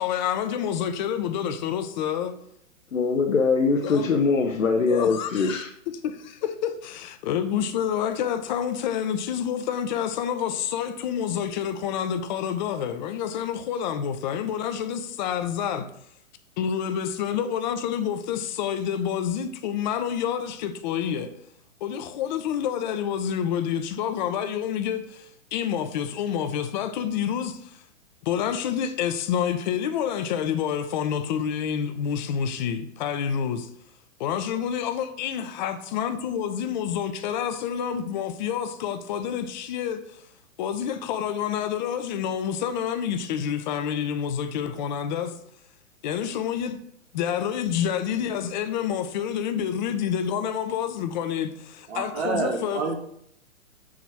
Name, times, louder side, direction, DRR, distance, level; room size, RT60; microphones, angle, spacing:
voice 1, 0.0-2.3 3.8-4.1 4.9-5.6 6.0-15.9 16.6-21.3 21.8-27.8 28.2-33.7 34.2-40.0 40.6-45.3 46.0-46.8 47.1-51.5 52.0-52.8, left 8 dB, 35° left, 0.7 m, -28 dB
voice 2, 2.9-5.7, left 4 dB, 75° left, 0.9 m, -22 dB
voice 3, 51.9-52.9, right 4 dB, 55° right, 1.9 m, -28 dB
7.2 x 3.0 x 5.9 m
figure-of-eight pair, 120°, 39 cm